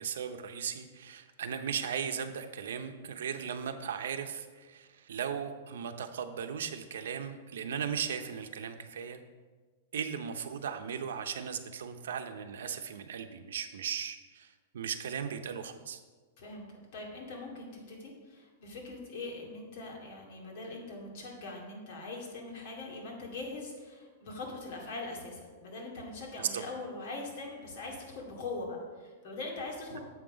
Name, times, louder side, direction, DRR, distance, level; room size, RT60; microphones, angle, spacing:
voice 1, 0.0-9.2 9.9-16.0 26.4-26.6 29.9-30.0, right 7 dB, 85° right, 7 dB, 0.7 m, -37 dB
voice 2, 16.4-30.0, left 2 dB, 50° left, -1 dB, 2.3 m, -42 dB
7.8 x 5.9 x 5.0 m, 1.4 s
supercardioid pair, 155°, 0 cm